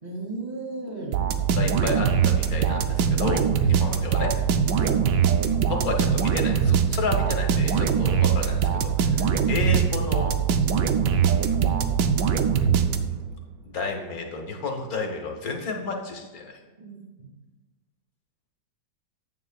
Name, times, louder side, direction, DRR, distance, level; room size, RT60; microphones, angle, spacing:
voice 1, 0.0-1.2 4.8-5.0 16.8-17.3, right 3 dB, 25° right, -2 dB, 2.2 m, -34 dB
sound 1, 1.1-13.4, right 7 dB, 80° right, 1.2 m, -22 dB
voice 2, 1.5-4.3 5.6-10.3 11.2-11.5 13.6-16.6, left 4 dB, 60° left, 2 dB, 1.5 m, -31 dB
9.4 x 9.2 x 2.4 m, 1.2 s
omnidirectional pair, 1.9 m